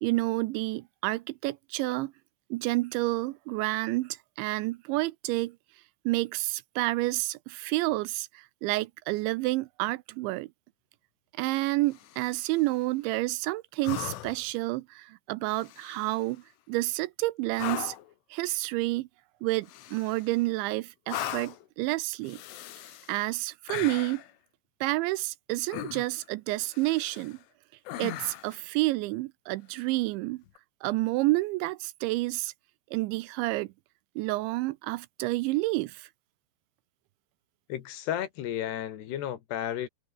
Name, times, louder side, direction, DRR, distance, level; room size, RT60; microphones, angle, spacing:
voice 1, 0.0-2.1 2.5-5.6 6.1-10.5 11.4-18.0 18.3-19.1 19.4-22.4 23.1-24.2 24.8-27.4 28.0-30.4 30.8-32.5 32.9-33.7 34.2-36.1, right 20 dB, 80° right, 2.9 m, -29 dB
sound 1, 11.9-12.6 13.8-14.5 15.5-16.2 17.6-18.1 19.7-20.4 21.1-21.7 22.2-23.2 23.7-24.3 25.7-26.3 26.7-27.4 27.9-28.6 30.5-30.6, left 13 dB, 85° left, 4.3 m, -39 dB
voice 2, 37.7-39.9, left 11 dB, 65° left, 3.6 m, -33 dB
omnidirectional pair, 5.5 m